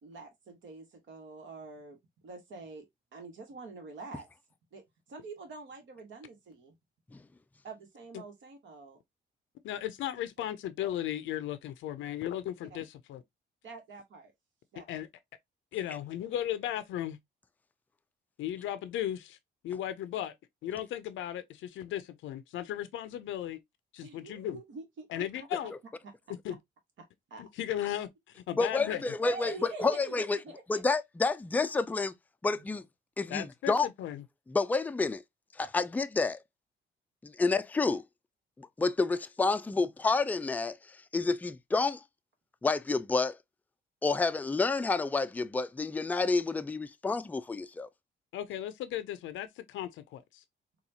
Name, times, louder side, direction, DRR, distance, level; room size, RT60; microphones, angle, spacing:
voice 1, 0.0-2.8 3.1-4.3 4.7-6.7 7.6-9.0 13.6-14.3 14.7-14.9 24.0-25.3 27.0-27.4 29.2-30.8 32.5-32.7 39.7-39.9, right 3 dB, 70° right, 1.3 m, -45 dB
voice 2, 9.6-13.2 14.9-15.1 15.7-17.2 18.4-19.4 19.6-20.3 20.6-23.6 23.9-24.6 25.1-25.7 26.4-26.6 27.4-29.0 33.3-34.2 48.3-50.4, left 11 dB, 75° left, 0.5 m, -36 dB
voice 3, 28.6-29.5 29.8-30.4 30.7-32.1 32.4-32.8 33.2-33.9 34.5-35.2 35.6-36.4 37.2-38.0 38.6-42.0 42.6-43.4 44.0-47.9, left 3 dB, 10° left, 0.3 m, -29 dB
4.1 x 2.3 x 2.7 m
cardioid pair, 90°, 20 cm